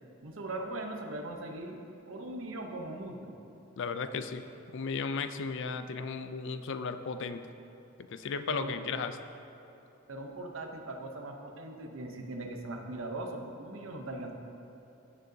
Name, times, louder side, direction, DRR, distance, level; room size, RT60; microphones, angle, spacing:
voice 1, 0.2-3.3 8.5-8.8 10.1-14.3, right 2 dB, 75° right, 3 dB, 0.8 m, -40 dB
voice 2, 3.8-4.4 4.7-7.5 8.1-9.2, left 5 dB, 65° left, 10 dB, 0.4 m, -35 dB
16.5 x 6.6 x 2.7 m, 3.0 s
head